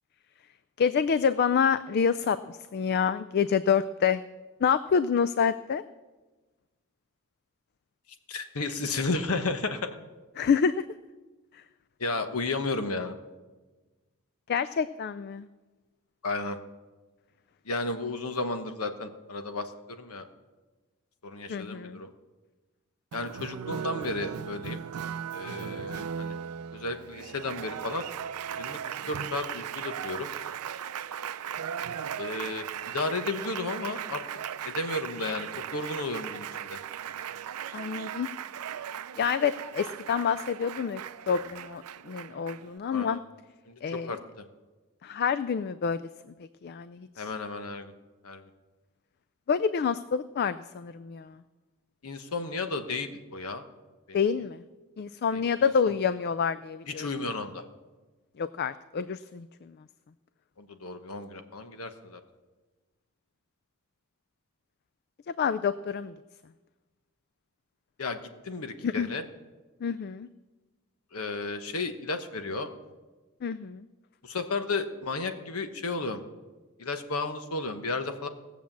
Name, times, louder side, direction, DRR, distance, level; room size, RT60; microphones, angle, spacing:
voice 1, 0.8-4.2 4.6-5.8 10.4-10.8 11.5-11.6 14.5-15.5 21.5-22.0 37.7-38.3 39.2-41.0 41.3-43.2 43.8-44.2 45.0-47.3 49.5-51.4 54.1-54.6 55.0-57.1 58.4-59.9 65.4-66.1 68.8-69.1 69.8-70.3 73.4-73.9, left 6 dB, 45° left, 14 dB, 0.3 m, -28 dB
voice 2, 8.3-10.0 12.0-13.1 16.2-16.6 17.6-20.3 21.2-22.1 23.1-24.8 25.3-26.4 26.7-28.1 28.6-30.3 32.2-34.2 34.6-36.8 42.9-43.2 43.7-43.8 44.1-44.2 47.2-47.9 48.2-48.4 52.0-53.6 54.1-54.2 55.3-55.4 56.9-57.6 60.6-62.2 68.0-69.2 71.1-72.7 74.2-76.2 76.8-78.3, left 3 dB, 75° left, 8 dB, 1.1 m, -33 dB
Applause, 23.1-42.8, right 8 dB, 85° right, 0.5 m, -37 dB
17.5 x 7.3 x 7.3 m, 1.2 s
head